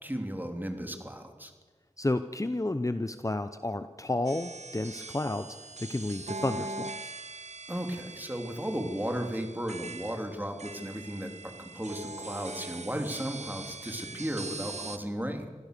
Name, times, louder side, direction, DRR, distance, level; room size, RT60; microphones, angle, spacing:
voice 1, 0.0-1.5 7.7-15.5, equal, 15° right, 4 dB, 3.4 m, -35 dB
voice 2, 2.0-5.5 5.8-7.1, left 2 dB, 25° left, 10 dB, 0.8 m, -31 dB
sound 1, 4.3-15.0, right 3 dB, 70° right, 1.2 m, -42 dB
26.5 x 16.0 x 6.8 m, 1.4 s
wide cardioid pair, 45°, 12 cm